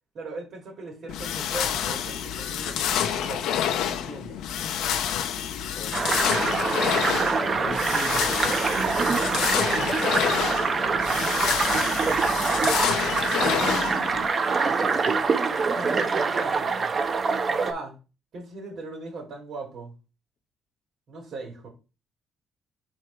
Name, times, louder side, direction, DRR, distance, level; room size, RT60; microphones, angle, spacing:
voice 1, 0.1-3.6 3.9-4.4 10.8-11.2 14.5-14.7 15.7-16.9 17.5-18.0 18.3-19.9 21.1-21.7, right 3 dB, 65° right, 0 dB, 2.7 m, -39 dB
sound 1, 1.1-14.3, left 9 dB, 90° left, 0.8 m, -28 dB
voice 2, 5.8-9.6 13.6-14.0 14.6-15.2, left 4 dB, 50° left, 8 dB, 1.1 m, -39 dB
sound 2, 5.9-17.7, right 4 dB, 45° right, 0.9 m, -25 dB
4.7 x 4.4 x 4.6 m, 0.30 s
cardioid pair, 90°, 0 cm